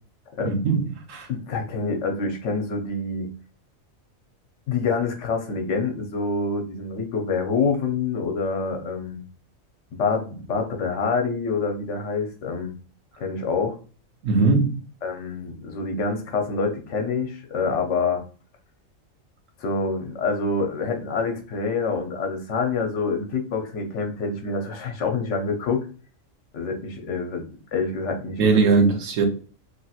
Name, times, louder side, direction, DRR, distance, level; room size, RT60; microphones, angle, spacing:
voice 1, 0.4-1.3 14.2-14.8 28.4-29.2, right 4 dB, 70° right, 1.1 m, -20 dB
voice 2, 1.3-3.3 4.7-9.2 9.9-12.7 13.2-13.8 15.0-18.2 19.6-25.9 26.5-27.4 27.7-28.6, left 4 dB, 65° left, 0.9 m, -26 dB
3.1 x 2.8 x 2.3 m
omnidirectional pair, 1.4 m